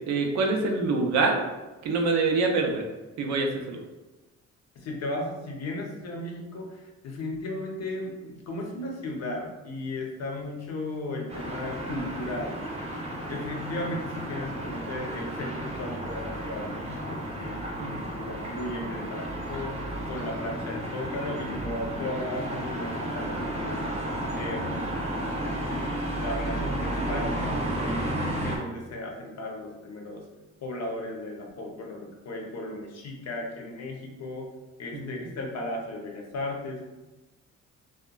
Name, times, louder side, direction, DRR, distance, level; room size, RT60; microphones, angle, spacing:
voice 1, 0.1-1.4 1.8-2.8 3.2-3.8 17.8-17.9 28.1-28.2 34.9-35.1, right 3 dB, 65° right, 2 dB, 0.5 m, -25 dB
voice 2, 4.8-12.6 13.3-24.0 24.3-25.8 26.1-30.2 30.6-34.5 34.8-36.8, left 2 dB, 60° left, 1 dB, 0.7 m, -36 dB
sound 1, 11.3-28.6, right 1 dB, 20° right, 0.7 m, -32 dB
2.8 x 2.2 x 2.2 m, 1.1 s
cardioid pair, 90°, 30 cm